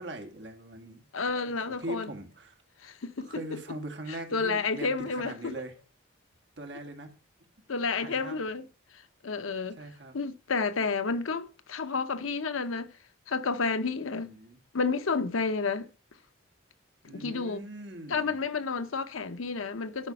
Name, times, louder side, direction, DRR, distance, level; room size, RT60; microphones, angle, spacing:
voice 1, 0.0-1.0 1.5-2.6 3.2-5.7 6.6-7.1 8.0-8.4 9.8-10.1 14.1-14.6 17.1-18.4, right 1 dB, 55° right, 2.0 m, -41 dB
voice 2, 1.1-2.1 2.8-3.3 4.3-5.5 7.7-8.6 8.9-9.8 10.1-12.9 13.3-14.3 14.7-15.9 17.1-17.6 18.1-20.1, left 4 dB, 85° left, 0.8 m, -30 dB
12.0 x 6.3 x 5.3 m
head